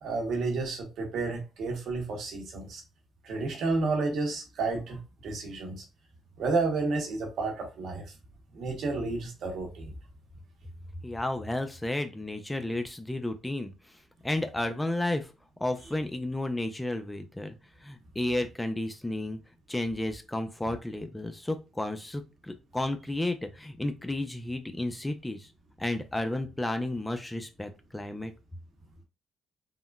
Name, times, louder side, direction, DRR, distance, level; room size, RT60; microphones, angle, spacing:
voice 1, 0.0-2.8 3.2-5.8 6.4-8.1 8.5-9.9, right 3 dB, 75° right, 1.1 m, -31 dB
voice 2, 11.0-14.0 14.2-15.3 15.6-17.6 17.8-19.4 19.7-25.5 25.8-28.3, left 1 dB, 10° left, 0.4 m, -32 dB
3.7 x 2.1 x 2.3 m
cardioid pair, 90°, 0 cm